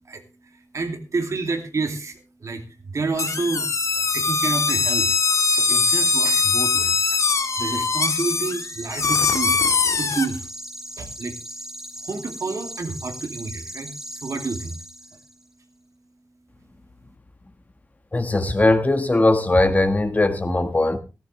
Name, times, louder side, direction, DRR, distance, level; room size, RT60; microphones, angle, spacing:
voice 1, 0.0-5.2 5.5-7.2 7.6-10.5 11.0-11.4 12.0-14.8 15.1-15.2, right 3 dB, 65° right, 2.5 m, -30 dB
sound 1, 3.2-10.3, left 4 dB, 70° left, 1.5 m, -21 dB
sound 2, 3.6-15.4, right 1 dB, 5° right, 2.4 m, -38 dB
voice 2, 18.1-21.0, left 2 dB, 30° left, 1.5 m, -19 dB
15.5 x 14.5 x 3.2 m
wide cardioid pair, 115°, 6 cm